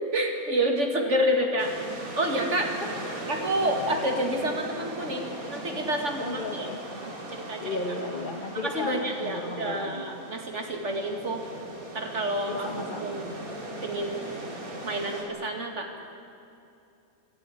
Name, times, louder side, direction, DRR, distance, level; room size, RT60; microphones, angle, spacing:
voice 1, 0.0-1.7 2.2-2.7 3.3-6.7 7.0-7.8 8.6-11.4 11.9-13.3 13.8-14.2 14.8-15.9, right 1 dB, 55° right, 3 dB, 2.6 m, -29 dB
sound 1, 1.6-15.2, right 1 dB, 85° right, 3.3 m, -39 dB
voice 2, 2.6-3.3 4.3-4.4 6.2-6.8 7.6-10.0 12.4-13.3, left 3 dB, 40° left, 2 dB, 1.3 m, -35 dB
24.5 x 12.5 x 9.8 m, 2.7 s
omnidirectional pair, 1.5 m